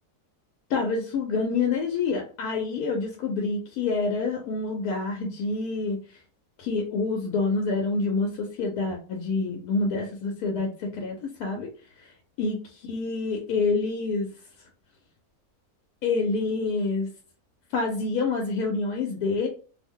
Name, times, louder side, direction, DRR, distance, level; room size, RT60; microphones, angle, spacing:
voice 1, 0.7-6.2 6.6-11.7 12.4-14.3 16.0-17.1 17.7-19.5, left 4 dB, 85° left, 1 dB, 1.1 m, -27 dB
2.7 x 2.0 x 3.5 m, 0.40 s
omnidirectional pair, 1.6 m